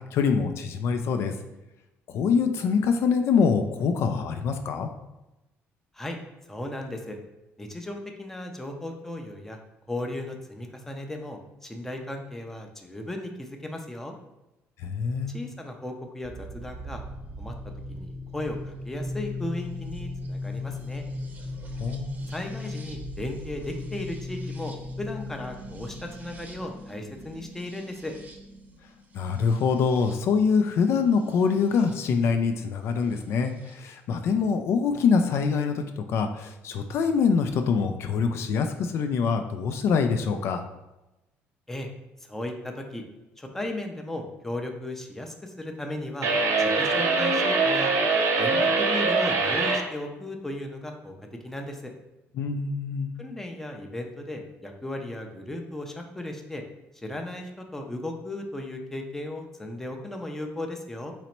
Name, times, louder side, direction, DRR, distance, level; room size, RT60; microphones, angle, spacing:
voice 1, 0.1-1.3 2.1-4.9 14.8-15.3 21.8-22.1 29.1-40.6 52.4-53.1, left 5 dB, 60° left, 6 dB, 0.4 m, -24 dB
voice 2, 6.5-7.2 7.6-9.6 9.9-14.1 15.3-17.0 17.4-17.5 17.9-21.0 22.3-28.1 41.7-41.9 42.3-43.0 43.4-46.3 46.6-47.9 48.4-51.1 51.4-51.9 53.2-56.6 56.9-61.1, left 1 dB, 5° left, 3 dB, 0.5 m, -36 dB
sound 1, 16.2-32.0 33.1-33.7, left 2 dB, 30° right, 0.7 m, -38 dB
sound 2, 46.2-49.8, right 3 dB, 65° right, 0.8 m, -23 dB
4.0 x 3.0 x 4.4 m, 0.99 s
cardioid pair, 140°, 5 cm